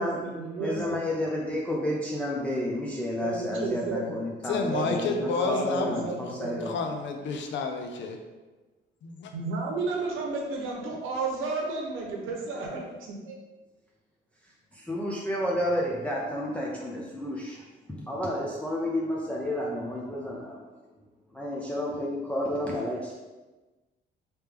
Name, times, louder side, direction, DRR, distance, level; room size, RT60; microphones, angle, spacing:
voice 1, 0.0-1.0 3.2-4.2 4.7-6.7 9.3-13.4, right 3 dB, 90° right, 0 dB, 0.8 m, -32 dB
voice 2, 0.6-6.8 14.7-20.8 21.3-23.2, left 1 dB, 5° left, -4 dB, 0.5 m, -31 dB
voice 3, 4.5-6.0 6.4-8.2 9.0-9.3, left 4 dB, 70° left, 4 dB, 0.6 m, -30 dB
3.2 x 3.0 x 3.4 m, 1.2 s
cardioid pair, 90°, 20 cm